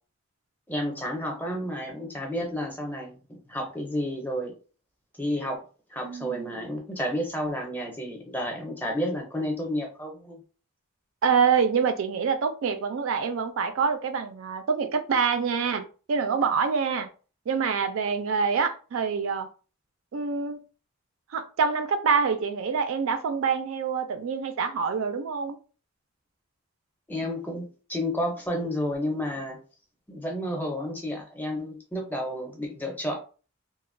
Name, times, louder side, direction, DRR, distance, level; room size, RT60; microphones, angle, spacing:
voice 1, 0.7-4.5 5.2-5.6 5.9-10.4 27.1-29.6 30.1-33.1, equal, 10° left, 0.5 m, -31 dB
voice 2, 6.0-6.6 11.2-17.1 17.5-19.5 20.1-20.6 21.3-25.6, right 6 dB, 70° right, 0.3 m, -26 dB
2.9 x 2.0 x 2.5 m
head